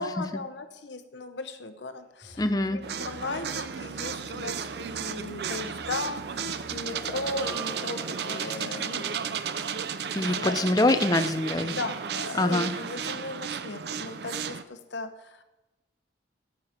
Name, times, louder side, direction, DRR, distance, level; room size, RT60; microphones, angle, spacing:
voice 1, 0.0-9.4 9.7-9.8 10.2-10.6 11.7-15.4, left 3 dB, 75° left, 9 dB, 0.8 m, -37 dB
Musical instrument, 2.2-7.7, right 2 dB, 40° right, 3.1 m, -51 dB
voice 2, 2.4-2.8 10.1-11.7 12.3-12.7, left 2 dB, 20° left, 8 dB, 0.6 m, -24 dB
sound 1, 2.8-14.6, right 7 dB, 60° right, 0.5 m, -34 dB
sound 2, 6.8-10.8, right 1 dB, 45° left, 2.2 m, -44 dB
14.0 x 9.0 x 4.4 m, 1.0 s
head